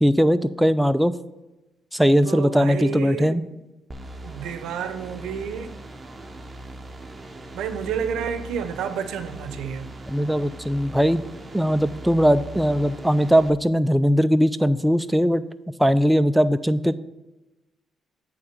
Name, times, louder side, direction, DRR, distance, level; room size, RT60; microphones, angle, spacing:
voice 1, 0.0-1.1 1.9-3.4 10.1-11.2 11.5-15.4 15.8-17.0, equal, 5° right, 11 dB, 0.3 m, -20 dB
voice 2, 2.2-3.4 4.2-5.7 7.5-9.9, right 7 dB, 85° right, 10 dB, 0.6 m, -30 dB
sound 1, 3.9-13.5, right 1 dB, 25° right, 0.7 m, -40 dB
8.6 x 3.6 x 6.5 m, 1.1 s
cardioid pair, 90°, 0 cm